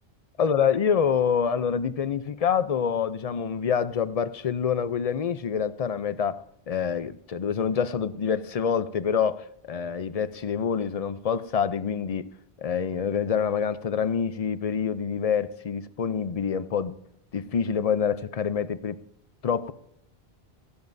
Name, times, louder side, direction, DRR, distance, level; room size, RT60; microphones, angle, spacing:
voice 1, 0.4-12.3 12.6-17.0 17.3-19.0 19.4-19.7, left 7 dB, 45° left, 0.6 m, -26 dB
18.0 x 15.5 x 2.7 m
omnidirectional pair, 1.0 m